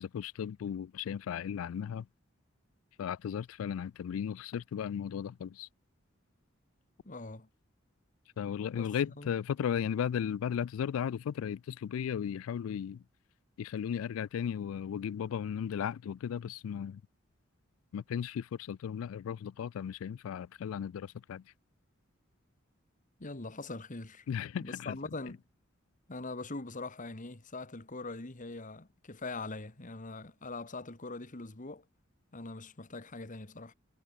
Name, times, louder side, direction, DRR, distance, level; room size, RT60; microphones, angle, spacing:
voice 1, 0.0-2.1 3.0-5.7 8.4-13.0 13.6-17.0 17.9-21.4 24.3-25.0, left 8 dB, 85° left, 0.3 m, -35 dB
voice 2, 7.0-7.5 8.7-9.3 23.2-24.3 24.6-25.4 26.1-31.8 32.3-33.7, left 3 dB, 40° left, 1.7 m, -42 dB
head